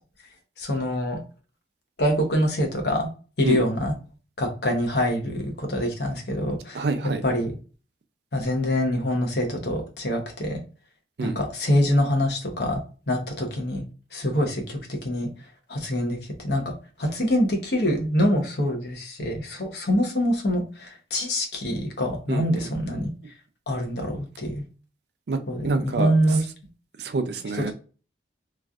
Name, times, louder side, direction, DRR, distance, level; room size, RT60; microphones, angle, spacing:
voice 1, 0.6-1.2 2.0-3.1 3.4-3.9 4.4-6.8 7.2-7.5 8.3-10.6 11.2-12.8 13.1-13.8 14.1-15.3 15.7-16.2 16.4-16.7 17.0-23.1 23.7-24.6 25.5-26.5, equal, 70° left, 0.9 m, -25 dB
voice 2, 6.7-7.2 11.2-11.4 22.3-22.7 25.3-26.1 27.0-27.7, right 3 dB, 70° right, 0.5 m, -27 dB
3.1 x 2.5 x 2.3 m
head